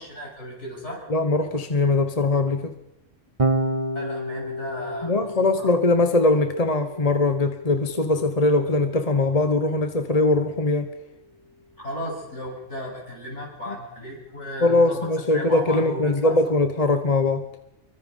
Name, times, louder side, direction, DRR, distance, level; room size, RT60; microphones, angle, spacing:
voice 1, 0.0-1.0 3.9-5.1 5.6-5.7 11.8-15.1 15.3-16.4, equal, 70° left, -1 dB, 7.9 m, -35 dB
voice 2, 1.1-2.7 5.0-10.9 13.7-13.8 14.6-17.5, left 2 dB, 30° left, 7 dB, 1.3 m, -21 dB
Electric guitar / Bass guitar, 3.4-9.8, right 1 dB, 25° right, 1.5 m, -31 dB
26.0 x 23.5 x 5.6 m, 0.87 s
omnidirectional pair, 1.3 m